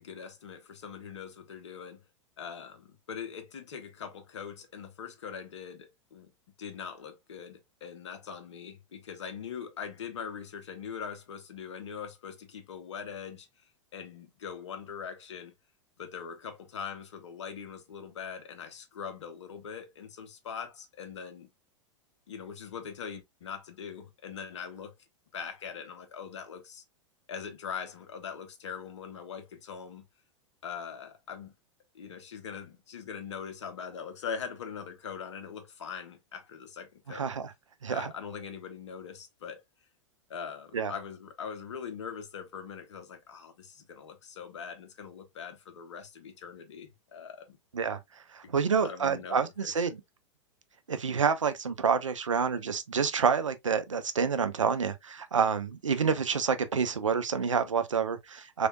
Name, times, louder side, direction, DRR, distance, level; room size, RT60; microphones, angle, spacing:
voice 1, 0.0-2.0 2.4-6.3 6.6-15.5 16.0-21.5 22.3-24.9 25.3-26.8 27.3-30.0 30.6-31.5 31.9-37.3 37.9-39.6 40.3-47.6 48.4-48.5 48.8-49.9, left 7 dB, 65° left, 1.0 m, -42 dB
voice 2, 37.1-37.5 37.8-38.1 40.7-40.9 47.7-48.0 48.3-50.0 50.9-58.7, right 6 dB, 80° right, 0.6 m, -28 dB
3.6 x 3.4 x 2.3 m
figure-of-eight pair, 95°, 16 cm